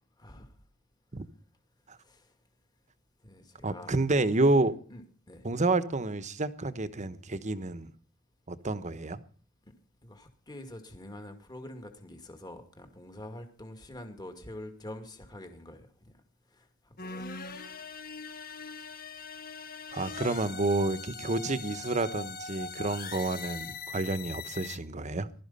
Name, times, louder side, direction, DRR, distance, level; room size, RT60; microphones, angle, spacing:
voice 1, 0.2-0.5 2.0-2.3 3.2-3.9 4.6-5.5 9.7-9.8 10.0-16.1 16.5-17.2, left 1 dB, 20° left, 2.2 m, -46 dB
voice 2, 3.6-4.7 5.4-7.9 8.5-9.2 19.9-25.3, right 2 dB, 35° right, 1.2 m, -29 dB
sound 1, 17.0-24.8, left 4 dB, 45° left, 1.5 m, -41 dB
20.5 x 12.5 x 5.6 m
head